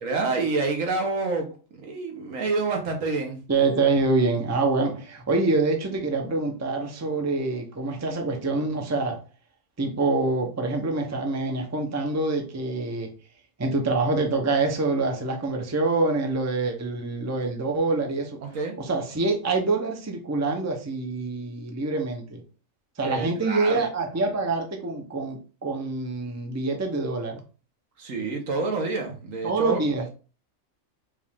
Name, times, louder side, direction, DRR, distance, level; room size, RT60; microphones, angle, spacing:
voice 1, 0.0-3.4 18.4-18.8 23.0-23.8 28.0-29.8, right 3 dB, 75° right, 1.5 m, -28 dB
voice 2, 3.5-9.2 9.8-13.1 13.6-18.4 18.8-22.4 23.0-27.4 29.4-30.0, right 3 dB, 15° right, 0.6 m, -26 dB
5.0 x 2.5 x 3.5 m
omnidirectional pair, 1.4 m